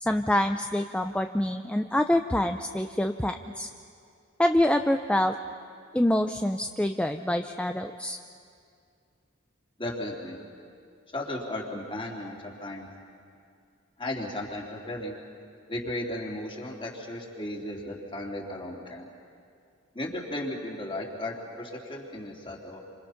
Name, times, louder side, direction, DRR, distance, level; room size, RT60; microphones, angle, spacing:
voice 1, 0.0-3.7 4.4-5.4 5.9-8.2, left 1 dB, 5° left, 6 dB, 0.5 m, -26 dB
voice 2, 9.8-10.4 11.1-12.9 14.0-15.2 15.7-19.1 19.9-22.8, left 1 dB, 25° left, -2 dB, 3.3 m, -35 dB
28.0 x 26.5 x 5.8 m, 2.4 s
head